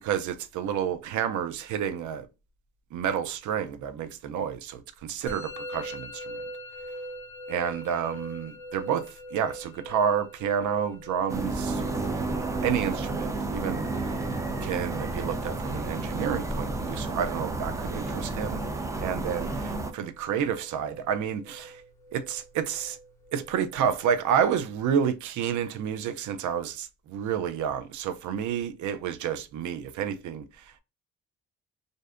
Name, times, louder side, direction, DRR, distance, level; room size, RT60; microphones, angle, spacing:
voice 1, 0.0-2.3 2.9-6.4 7.5-11.8 12.6-14.2 14.6-18.6 19.0-21.8 22.1-23.0 23.3-30.6, right 8 dB, 75° right, 0.5 m, -30 dB
Musical instrument, 5.3-24.2, equal, 10° left, 0.7 m, -43 dB
sound 1, 11.3-19.9, right 2 dB, 10° right, 0.4 m, -31 dB
2.6 x 2.1 x 2.3 m
cardioid pair, 90°, 30 cm